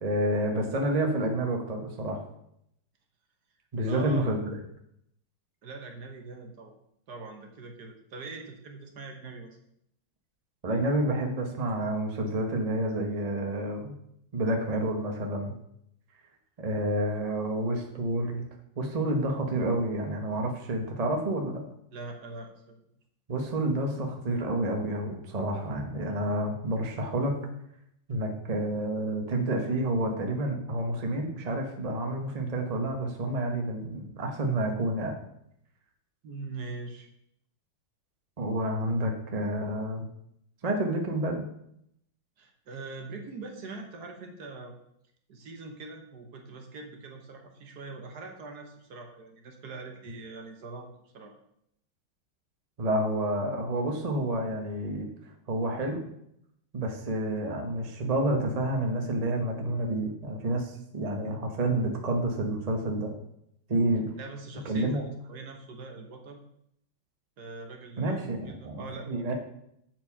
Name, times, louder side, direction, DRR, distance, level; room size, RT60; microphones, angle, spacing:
voice 1, 0.0-2.2 3.7-4.6 10.6-13.9 14.3-15.5 16.6-18.4 18.8-21.6 23.3-27.3 28.1-35.2 38.4-40.1 40.6-41.4 52.8-55.1 55.5-56.1 56.7-63.1 63.7-64.1 64.6-65.0 68.0-69.3, right 1 dB, 35° right, 2 dB, 0.6 m, -29 dB
voice 2, 3.8-4.2 5.6-6.7 7.1-9.6 21.9-22.7 36.2-37.1 42.4-44.8 45.3-50.9 51.1-51.3 64.2-66.4 67.4-69.3, right 3 dB, 55° right, 4 dB, 1.3 m, -42 dB
7.7 x 4.5 x 5.5 m, 0.75 s
omnidirectional pair, 2.3 m